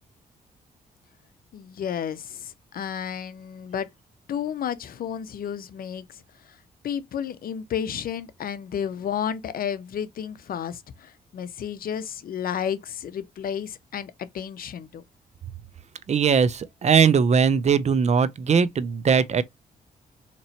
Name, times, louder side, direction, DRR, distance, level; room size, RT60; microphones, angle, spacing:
voice 1, 1.5-3.9 4.3-6.2 6.8-15.0, left 8 dB, 65° left, 0.6 m, -32 dB
voice 2, 16.1-19.4, right 6 dB, 45° right, 0.5 m, -20 dB
4.1 x 3.0 x 2.7 m
cardioid pair, 80°, 16 cm